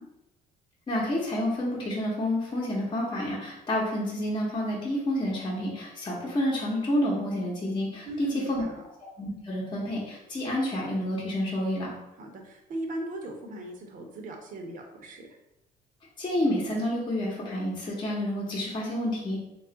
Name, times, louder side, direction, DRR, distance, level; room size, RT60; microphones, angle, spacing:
voice 1, 0.9-8.6 9.2-11.9 16.2-19.4, left 1 dB, 25° left, -5 dB, 0.9 m, -29 dB
voice 2, 8.1-8.8 12.1-15.3, right 1 dB, 50° right, 2 dB, 0.8 m, -38 dB
3.2 x 2.4 x 3.8 m, 0.87 s
cardioid pair, 110°, 17 cm